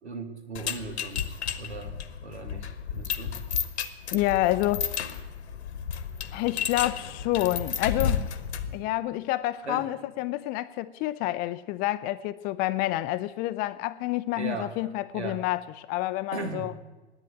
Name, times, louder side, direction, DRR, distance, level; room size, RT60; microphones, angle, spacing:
voice 1, 0.0-3.4 9.6-9.9 14.4-14.7 15.1-15.4 16.3-16.7, right 4 dB, 80° right, 2.1 m, -38 dB
sound 1, 0.5-8.8, left 8 dB, 75° left, 1.2 m, -32 dB
voice 2, 4.1-4.9 6.3-8.3 8.7-16.7, left 16 dB, 30° left, 0.4 m, -28 dB
10.5 x 9.0 x 9.8 m
figure-of-eight pair, 100°, 34 cm